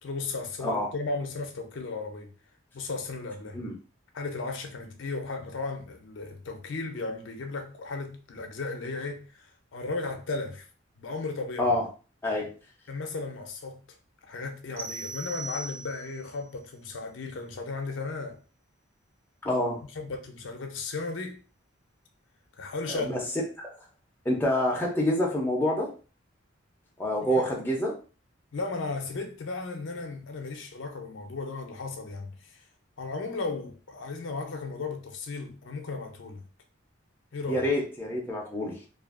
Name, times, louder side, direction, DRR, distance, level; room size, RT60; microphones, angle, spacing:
voice 1, 0.0-2.3 2.7-3.6 4.1-10.7 11.0-11.7 12.9-13.8 14.3-18.4 19.9-21.4 22.6-23.1 27.2-27.6 28.5-32.6 33.0-36.4 37.3-37.6, left 3 dB, 70° left, 0.5 m, -35 dB
sound 1, 14.8-16.3, right 2 dB, 45° right, 1.0 m, -38 dB
voice 2, 19.4-19.8 22.9-23.2 23.6-23.7 24.3-25.9 27.0-28.0 37.5-38.8, left 1 dB, 10° left, 0.5 m, -27 dB
2.5 x 2.4 x 2.4 m
head